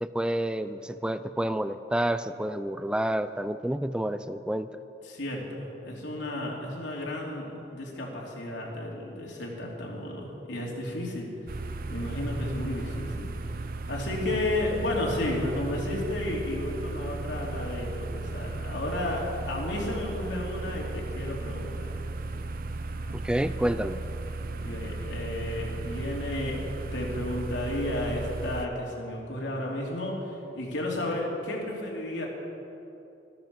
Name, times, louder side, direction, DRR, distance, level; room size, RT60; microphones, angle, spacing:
voice 1, 0.0-4.7 23.1-24.0, right 1 dB, 5° right, 12 dB, 0.3 m, -29 dB
voice 2, 5.0-11.3 11.9-13.3 13.9-21.9 24.5-26.6 26.9-32.3, left 1 dB, 85° left, -3 dB, 2.9 m, -32 dB
sound 1, 11.5-28.7, right 2 dB, 50° right, 0.6 m, -35 dB
13.5 x 13.0 x 5.3 m, 2.9 s
head